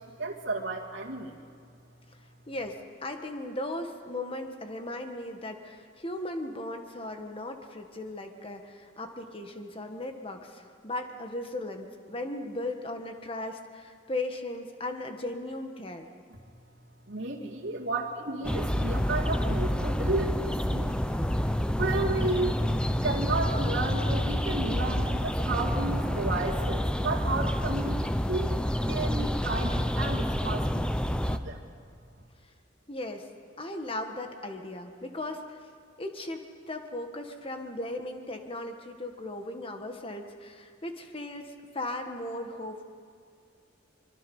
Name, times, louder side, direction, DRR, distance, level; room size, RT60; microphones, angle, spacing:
voice 1, 0.0-1.5 17.1-20.9 21.8-22.6 23.0-31.6, right 2 dB, 80° right, -3 dB, 2.3 m, -33 dB
voice 2, 2.5-16.1 32.9-33.2 33.6-35.6 36.0-42.8, left 1 dB, 30° left, 5 dB, 1.6 m, -37 dB
sound 1, 18.4-31.4, equal, 5° left, 0.7 m, -28 dB
24.5 x 23.5 x 5.6 m, 2.2 s
head